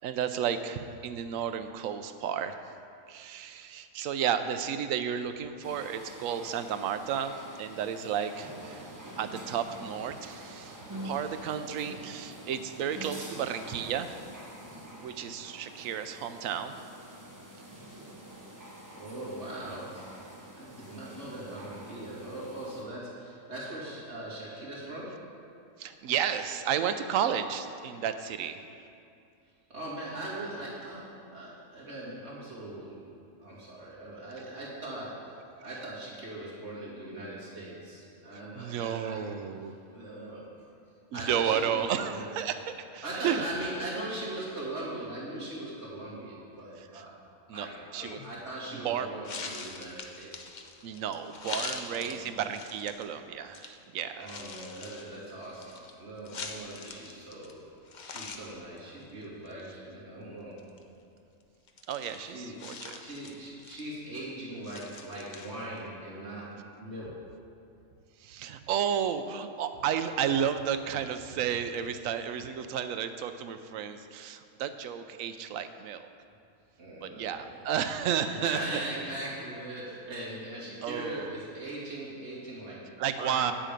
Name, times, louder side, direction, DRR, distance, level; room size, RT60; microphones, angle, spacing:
voice 1, 0.0-2.6 3.1-8.9 9.2-10.8 11.0-14.1 15.0-16.7 25.8-28.7 38.5-39.7 41.1-43.5 46.9-47.0 47.5-47.7 47.9-48.2 48.7-49.1 50.8-54.4 61.9-63.0 68.2-76.1 77.0-78.6 80.8-81.4 83.0-83.5, right 8 dB, 80° right, 9 dB, 1.0 m, -32 dB
sound 1, 5.6-22.8, right 1 dB, 15° right, 0.9 m, -46 dB
voice 2, 19.0-25.3 29.7-39.3 39.9-40.4 41.1-42.2 43.0-47.2 47.5-50.5 50.9-51.0 51.4-52.2 54.1-57.6 58.0-60.7 62.2-67.3 76.8-77.6 78.0-83.5, right 1 dB, 55° right, -8 dB, 2.6 m, -40 dB
sound 2, 48.0-48.3 49.2-53.1 53.5-53.7 54.2-57.6 57.8-58.5 58.8-58.9 59.2-59.6 60.6-60.8 61.7-64.0 64.6-65.8, left 4 dB, 45° left, 0.6 m, -43 dB
8.9 x 7.4 x 5.2 m, 2.5 s
omnidirectional pair, 1.4 m